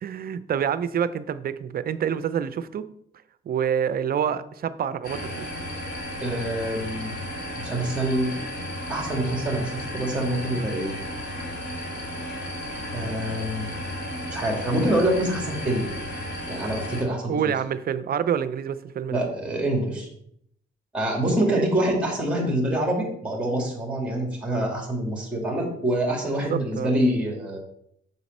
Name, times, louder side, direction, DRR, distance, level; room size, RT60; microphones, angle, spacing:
voice 1, 0.0-2.9 3.5-5.5 17.3-19.2 21.4-21.7 26.5-26.9, right 8 dB, 50° right, 14 dB, 0.5 m, -27 dB
sound 1, 5.0-17.0, left 1 dB, 60° left, 2.2 m, -34 dB
voice 2, 6.2-7.1 7.6-8.3 8.9-11.0 12.9-13.7 14.3-15.9 16.5-17.4 19.1-20.1 20.9-27.6, right 1 dB, 5° right, -1 dB, 2.1 m, -26 dB
6.7 x 4.0 x 5.3 m, 0.72 s
cardioid pair, 90°, 20 cm